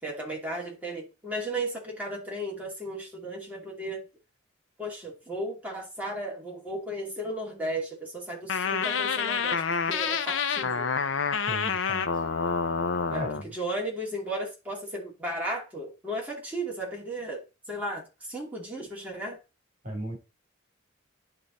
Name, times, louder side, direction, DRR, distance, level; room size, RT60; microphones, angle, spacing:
voice 1, 0.0-4.0 4.8-10.9 13.1-13.2 13.5-17.4 17.7-19.4, right 1 dB, 10° right, 2.8 m, -35 dB
sound 1, 8.5-13.4, left 5 dB, 75° left, 0.7 m, -28 dB
voice 2, 11.4-12.2 13.1-13.5 19.8-20.2, equal, 40° right, 3.4 m, -36 dB
10.5 x 3.8 x 4.1 m
head